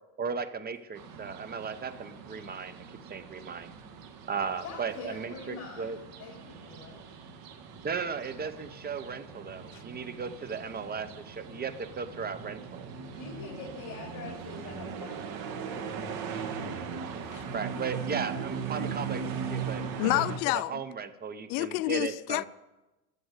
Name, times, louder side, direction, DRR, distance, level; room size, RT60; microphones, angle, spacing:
voice 1, 0.2-3.7 4.3-6.0 7.8-12.9 17.5-19.2 19.5-20.2 20.5-22.5, right 5 dB, 20° right, 0.8 m, -36 dB
sound 1, 1.0-20.4, right 6 dB, 50° right, 1.8 m, -39 dB
voice 2, 4.6-7.0 13.1-16.4, left 4 dB, 35° left, 3.1 m, -45 dB
voice 3, 20.0-20.8 21.5-22.4, left 19 dB, 65° left, 0.5 m, -29 dB
13.0 x 7.9 x 8.2 m
supercardioid pair, 110°, 45 cm